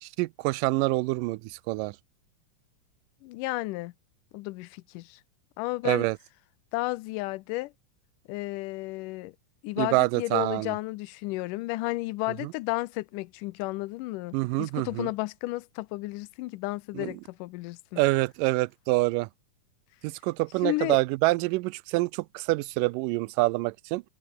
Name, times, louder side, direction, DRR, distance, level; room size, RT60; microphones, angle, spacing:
voice 1, 0.0-2.0 5.9-6.2 9.8-10.8 12.4-12.5 14.3-15.1 16.9-17.1 18.0-19.3 20.0-24.0, right 22 dB, 85° right, 2.1 m, -26 dB
voice 2, 3.2-3.9 4.3-5.2 5.6-6.1 6.7-7.7 8.3-9.3 9.6-18.0 20.6-21.0, left 20 dB, 80° left, 2.1 m, -33 dB
omnidirectional pair, 3.9 m